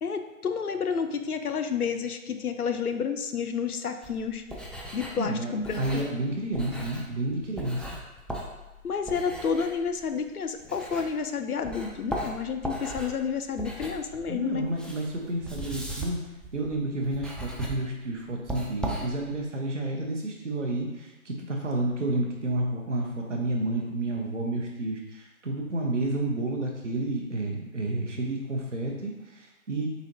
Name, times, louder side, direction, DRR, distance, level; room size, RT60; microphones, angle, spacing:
voice 1, 0.0-4.4 4.9-5.8 8.8-14.7, left 6 dB, 85° left, 8 dB, 0.6 m, -30 dB
sound 1, 4.0-11.3 11.6-19.5, right 1 dB, ahead, 0.3 m, -38 dB
voice 2, 5.2-7.9 14.3-16.2 16.5-29.9, right 2 dB, 55° right, 0 dB, 0.7 m, -30 dB
4.0 x 3.9 x 2.8 m, 1.0 s
figure-of-eight pair, 160°, 44 cm